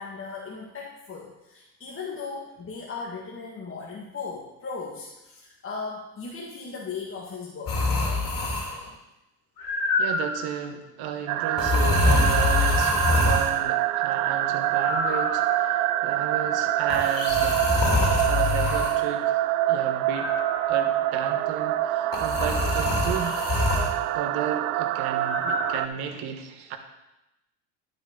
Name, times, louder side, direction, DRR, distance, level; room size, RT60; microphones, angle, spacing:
voice 1, 0.0-8.0, left 4 dB, 30° left, -3 dB, 1.8 m, -37 dB
sound 1, 7.7-8.9 9.6-10.5 11.6-13.5 14.8-15.8 16.9-18.9 20.2-20.9 22.1-23.9 25.3-25.7, left 3 dB, 50° left, 2.9 m, -25 dB
voice 2, 10.0-17.6 18.1-20.3 20.7-23.4 24.1-26.8, right 7 dB, 65° right, 6 dB, 1.5 m, -33 dB
sound 2, 11.3-25.9, right 13 dB, 80° right, 0.5 m, -26 dB
11.5 x 6.5 x 3.9 m, 0.93 s
hypercardioid pair, 80°, 42 cm